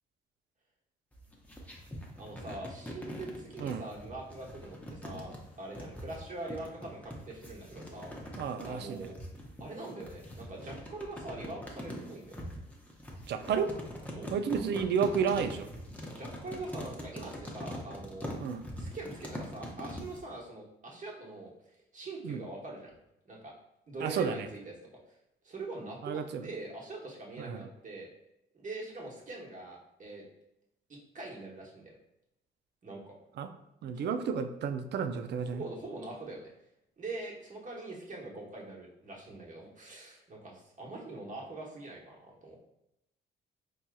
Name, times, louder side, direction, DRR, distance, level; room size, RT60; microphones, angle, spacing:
sound 1, 1.1-20.2, equal, 5° left, 0.7 m, -43 dB
voice 1, 2.2-5.3 5.6-8.4 8.6-9.1 9.6-12.5 14.1-14.3 16.1-18.3 18.8-21.5 21.9-22.9 23.2-23.5 23.9-25.2 25.4-28.1 28.5-30.2 30.9-31.9 32.8-33.1 33.9-34.1 35.4-36.5 37.0-42.6, right 2 dB, 40° right, -2 dB, 1.1 m, -43 dB
voice 2, 8.4-9.0 13.3-13.7 14.3-15.7 18.4-18.6 22.2-22.4 24.0-24.5 26.0-26.5 27.4-27.6 33.4-33.5 33.8-35.6, right 6 dB, 60° right, 9 dB, 0.4 m, -31 dB
4.8 x 2.8 x 2.3 m, 0.84 s
cardioid pair, 90°, 20 cm